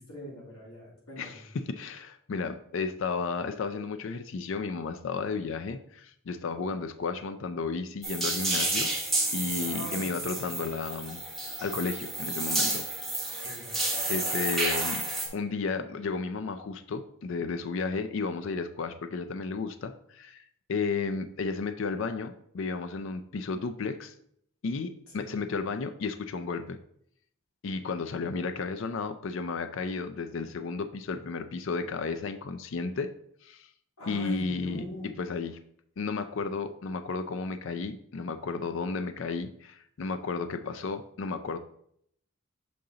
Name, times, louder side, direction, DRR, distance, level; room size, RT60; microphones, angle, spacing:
voice 1, 0.0-1.4 9.4-10.0 13.4-13.7 25.1-25.3 34.0-35.1, equal, 80° left, -4 dB, 2.2 m, -42 dB
voice 2, 1.2-8.9 9.3-11.2 11.6-12.8 13.7-15.0 15.3-20.4 20.7-24.1 24.6-26.8 27.6-33.1 33.4-33.7 34.1-34.8 35.2-35.6 36.0-41.6, left 4 dB, 60° left, 9 dB, 0.4 m, -33 dB
sound 1, 8.0-15.3, right 2 dB, ahead, 1.1 m, -30 dB
6.9 x 3.8 x 3.8 m, 0.68 s
head